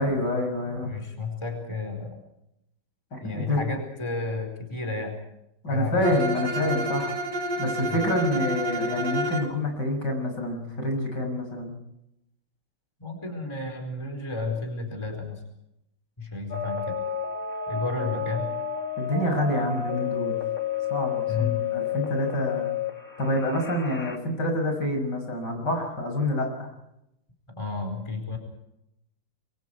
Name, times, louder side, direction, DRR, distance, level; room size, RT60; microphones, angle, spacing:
voice 1, 0.0-1.0 3.1-3.6 5.6-7.1 7.6-11.8 18.0-18.1 19.0-20.3 20.9-22.8 23.2-26.7, left 1 dB, 65° left, 4 dB, 7.2 m, -27 dB
voice 2, 0.8-2.2 3.2-5.2 5.7-6.1 7.9-8.0 13.0-15.4 16.2-17.0 17.7-18.5 21.3-21.6 27.6-28.4, left 3 dB, 15° left, 4 dB, 4.7 m, -32 dB
Bowed string instrument, 6.0-9.6, equal, 70° right, 3.1 m, -29 dB
sound 1, 16.5-24.2, left 7 dB, 45° left, 3.2 m, -31 dB
28.5 x 23.5 x 4.7 m, 0.83 s
omnidirectional pair, 2.0 m